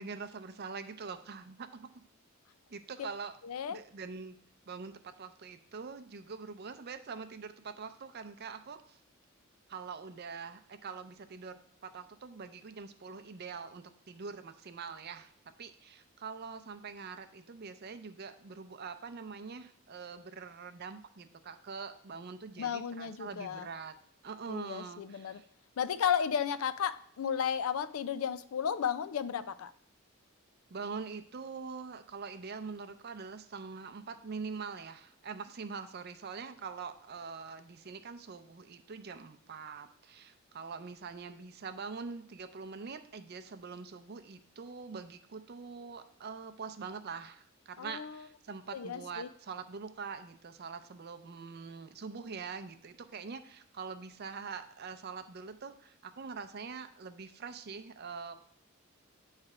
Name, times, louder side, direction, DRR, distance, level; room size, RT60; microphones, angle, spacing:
voice 1, 0.0-1.9 2.7-3.4 3.7-4.4 4.7-9.0 9.7-15.3 15.6-23.9 24.2-25.5 30.7-58.4, right 5 dB, 50° right, 0.5 m, -44 dB
voice 2, 3.4-3.8 22.6-23.7 24.5-25.4 25.8-29.7 47.8-48.2 48.7-49.3, left 8 dB, 85° left, 0.4 m, -34 dB
8.6 x 3.2 x 4.9 m
head